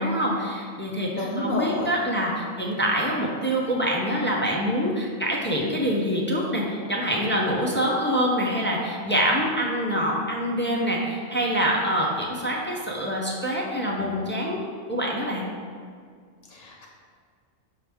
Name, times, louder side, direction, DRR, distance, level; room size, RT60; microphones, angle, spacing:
voice 1, 0.0-14.6 14.9-15.5, equal, 15° left, -3 dB, 0.3 m, -25 dB
voice 2, 1.2-1.9 16.5-16.9, left 2 dB, 85° left, -1 dB, 1.2 m, -30 dB
6.3 x 4.8 x 3.5 m, 2.1 s
omnidirectional pair, 1.4 m